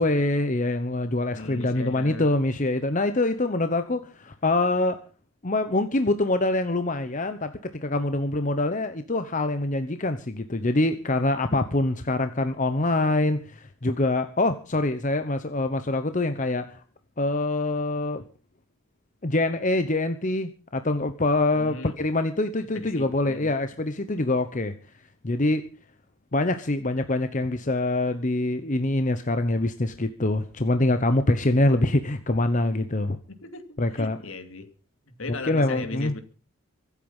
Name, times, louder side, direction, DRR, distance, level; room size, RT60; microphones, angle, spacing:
voice 1, 0.0-5.0 5.4-16.8 17.2-18.2 19.2-24.7 25.2-25.7 26.3-33.2 33.8-34.2 35.3-36.1, left 2 dB, 35° left, 9 dB, 0.9 m, -25 dB
voice 2, 1.3-2.3 21.5-21.9 22.7-23.5 33.3-34.7 35.1-36.2, left 2 dB, 70° left, 8 dB, 2.4 m, -37 dB
24.5 x 8.4 x 5.5 m, 0.38 s
head